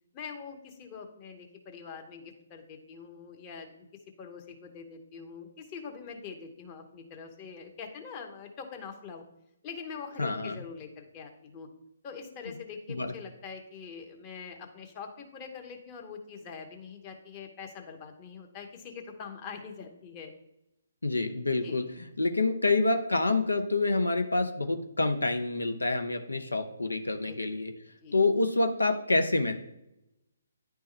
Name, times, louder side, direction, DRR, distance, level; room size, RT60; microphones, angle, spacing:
voice 1, 0.1-3.7 4.2-9.2 9.6-11.7 12.0-20.3 21.6-21.8 27.3-27.4 28.0-28.2, left 6 dB, 25° left, 3 dB, 1.0 m, -44 dB
voice 2, 10.2-10.6 12.9-13.1 21.0-27.7 28.1-29.5, left 2 dB, 85° left, 6 dB, 0.7 m, -27 dB
10.0 x 3.4 x 3.3 m, 0.85 s
figure-of-eight pair, 140°, 0 cm